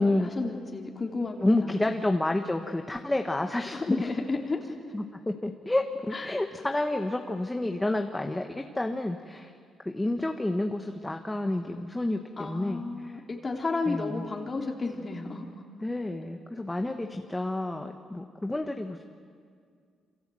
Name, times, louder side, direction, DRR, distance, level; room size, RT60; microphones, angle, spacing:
voice 1, 0.0-1.9 3.7-4.7 6.1-6.4 12.4-15.5, left 3 dB, 30° left, 1 dB, 3.0 m, -32 dB
voice 2, 1.4-4.1 4.9-9.5 9.8-13.2 13.9-14.3 15.8-19.0, left 2 dB, 10° left, 4 dB, 1.4 m, -29 dB
27.5 x 26.0 x 7.8 m, 2.1 s
cardioid pair, 90°, 0 cm